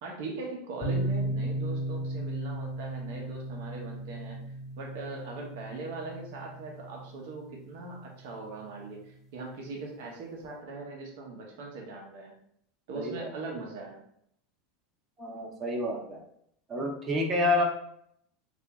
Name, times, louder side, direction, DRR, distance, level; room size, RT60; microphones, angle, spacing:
voice 1, 0.0-4.4 4.8-12.3 12.9-14.0, right 3 dB, 70° right, -1 dB, 0.9 m, -40 dB
sound 1, 0.8-8.5, right 1 dB, 30° left, 1.0 m, -36 dB
voice 2, 12.9-13.3 15.2-16.2 16.7-17.6, left 2 dB, 30° right, -1 dB, 0.8 m, -29 dB
2.8 x 2.6 x 3.5 m, 0.71 s
hypercardioid pair, 90°, 0 cm